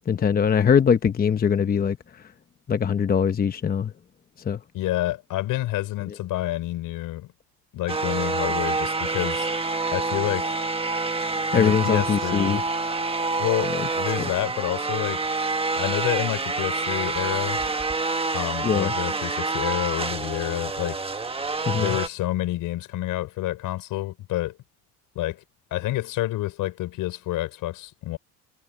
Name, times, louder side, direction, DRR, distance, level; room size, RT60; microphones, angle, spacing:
voice 1, 0.1-2.3 2.7-3.9 4.4-4.6 11.5-12.6 13.7-13.9 14.2-14.3 18.6-18.9 21.7-22.0, left 7 dB, 25° left, 0.9 m, -22 dB
voice 2, 4.7-7.3 7.7-9.5 9.9-10.6 11.5-12.6 13.4-15.2 15.8-17.6 18.3-21.0 21.8-24.6 25.2-25.4 25.7-28.2, left 15 dB, 70° left, 5.3 m, -28 dB
sound 1, 7.9-22.1, right 3 dB, 15° right, 1.5 m, -27 dB
cardioid pair, 110°, 33 cm